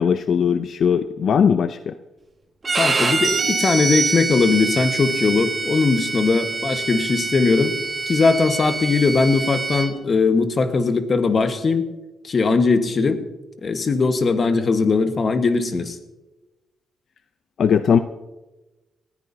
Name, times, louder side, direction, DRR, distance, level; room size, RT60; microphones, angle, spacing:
voice 1, 0.0-1.9 17.6-18.0, left 7 dB, 65° left, 10 dB, 0.5 m, -19 dB
Bowed string instrument, 2.6-9.9, right 3 dB, 35° right, 1.6 m, -26 dB
voice 2, 2.8-7.8 8.1-11.9 12.2-13.2 13.6-16.0, left 4 dB, 45° left, 7 dB, 1.4 m, -19 dB
sound 1, 3.2-4.8, right 6 dB, 70° right, 1.9 m, -27 dB
21.0 x 14.5 x 2.8 m, 1.1 s
cardioid pair, 80°, 0 cm